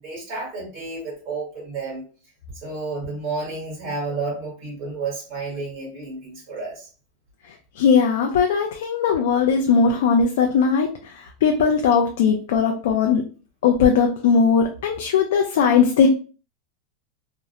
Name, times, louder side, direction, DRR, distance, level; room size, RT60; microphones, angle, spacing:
voice 1, 0.0-2.0 2.6-6.9, right 3 dB, 40° right, -4 dB, 1.2 m, -31 dB
voice 2, 7.8-13.2 13.6-16.1, left 6 dB, 65° left, 4 dB, 0.4 m, -19 dB
2.5 x 2.0 x 2.8 m, 0.38 s
supercardioid pair, 175°, 0 cm